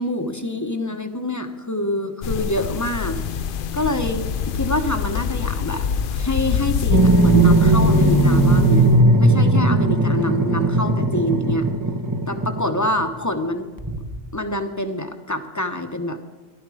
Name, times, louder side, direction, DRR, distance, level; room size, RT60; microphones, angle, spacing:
voice 1, 0.0-3.2 3.7-8.9 9.2-11.7 12.3-13.7 14.3-16.2, left 1 dB, 15° left, 7 dB, 0.9 m, -26 dB
sound 1, 2.2-9.0, left 7 dB, 60° left, 0.6 m, -25 dB
sound 2, 6.9-13.0 13.8-14.2, right 2 dB, 20° right, 0.7 m, -17 dB
15.5 x 12.0 x 4.9 m, 1.4 s
omnidirectional pair, 1.2 m